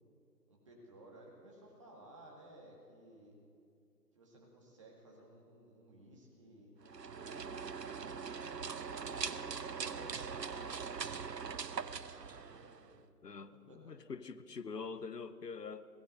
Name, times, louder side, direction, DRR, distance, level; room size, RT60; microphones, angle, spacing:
voice 1, 0.5-3.3 4.1-8.2 8.8-11.5 12.3-13.0 13.7-13.9, right 1 dB, 20° right, 1.8 m, -57 dB
sound 1, 6.8-13.0, right 6 dB, 85° right, 0.8 m, -42 dB
voice 2, 13.2-15.9, left 5 dB, 75° left, 0.9 m, -45 dB
17.5 x 12.5 x 6.5 m
figure-of-eight pair, 160°, 48 cm